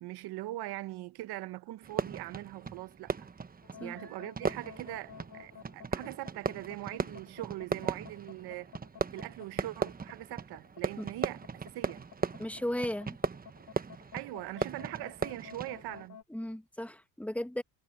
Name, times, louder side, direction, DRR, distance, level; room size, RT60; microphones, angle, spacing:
voice 1, 0.0-3.3 3.8-8.7 9.1-12.1 14.1-16.2, right 17 dB, 65° right, 1.1 m, -41 dB
Fireworks, 1.8-16.1, right 5 dB, 20° right, 1.2 m, -38 dB
sound 1, 3.6-16.2, left 7 dB, 45° left, 1.2 m, -51 dB
voice 2, 12.4-13.2 16.3-17.6, left 1 dB, 5° left, 1.5 m, -35 dB
supercardioid pair, 90°, 41 cm